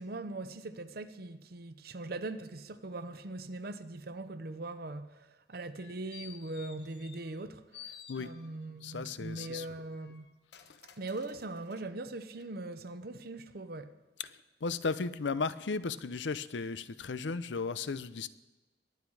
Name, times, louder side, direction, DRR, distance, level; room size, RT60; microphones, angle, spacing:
voice 1, 0.0-7.9 8.2-10.2 11.0-13.9, right 2 dB, 60° right, 0.8 m, -41 dB
sound 1, 5.6-7.4 7.7-8.7 9.3-11.9 12.4-12.5, left 9 dB, 70° left, 1.0 m, -53 dB
voice 2, 8.8-9.7 14.2-14.3 14.6-18.3, left 4 dB, 90° left, 0.6 m, -35 dB
22.0 x 9.0 x 4.8 m
head